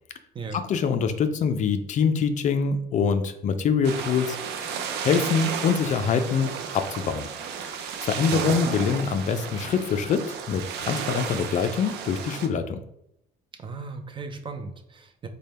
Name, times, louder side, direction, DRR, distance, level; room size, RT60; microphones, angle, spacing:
voice 1, 0.5-7.3 7.6-12.8, left 6 dB, 45° left, 9 dB, 0.4 m, -25 dB
sound 1, 3.8-12.5, right 7 dB, 80° right, 0.5 m, -33 dB
voice 2, 13.6-15.3, right 3 dB, 30° right, 6 dB, 0.4 m, -37 dB
3.3 x 2.2 x 4.1 m, 0.78 s
cardioid pair, 110°, 17 cm